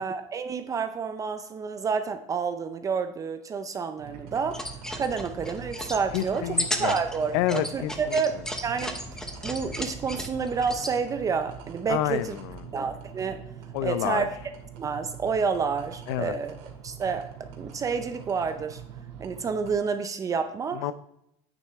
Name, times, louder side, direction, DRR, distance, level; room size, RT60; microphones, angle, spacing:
voice 1, 0.0-4.6 5.0-6.4 6.8-9.0 9.4-12.4 12.7-13.4 13.8-14.4 14.8-16.5 16.8-17.3 17.6-18.8 19.2-20.8, right 5 dB, 25° right, 9 dB, 0.5 m, -29 dB
sound 1, 4.0-19.8, right 8 dB, 70° right, 2.2 m, -44 dB
sound 2, 4.4-11.0, left 1 dB, 5° left, 0.8 m, -35 dB
voice 2, 6.1-7.0 7.3-8.2 11.9-12.8 13.7-14.3 16.1-16.3 20.7-20.9, left 14 dB, 70° left, 15 dB, 0.6 m, -29 dB
9.0 x 7.2 x 3.5 m, 0.78 s
supercardioid pair, 135°, 15 cm